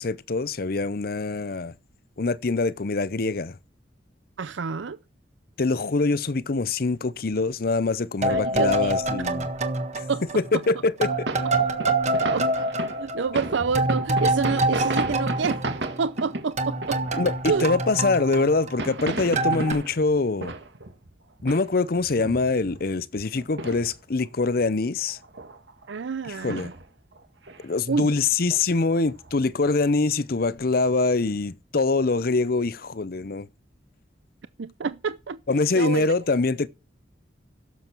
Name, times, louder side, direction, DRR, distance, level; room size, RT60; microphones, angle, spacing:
voice 1, 0.0-1.7 2.2-3.6 5.6-9.5 9.9-10.0 10.3-11.3 17.2-20.5 21.4-25.2 26.3-26.7 27.6-33.5 35.5-36.7, left 3 dB, 55° left, 0.7 m, -24 dB
voice 2, 4.4-5.0 8.3-8.9 10.1-10.2 11.9-12.0 12.3-12.7 13.0-15.7 16.0-17.0 17.5-17.7 25.9-26.7 27.9-28.1 34.6-35.4 35.7-36.1, right 5 dB, 85° right, 0.5 m, -28 dB
sound 1, 8.2-10.7 11.0-16.3 16.6-19.0 19.4-19.7, right 2 dB, 40° right, 1.5 m, -26 dB
sound 2, 11.3-17.9 18.5-21.1 21.4-24.2 24.5-24.6 25.0-25.9 26.2-26.8 27.1-27.9 28.5-28.6 29.0-29.9 30.4-30.6, right 2 dB, 70° right, 2.0 m, -34 dB
16.5 x 7.2 x 4.5 m
head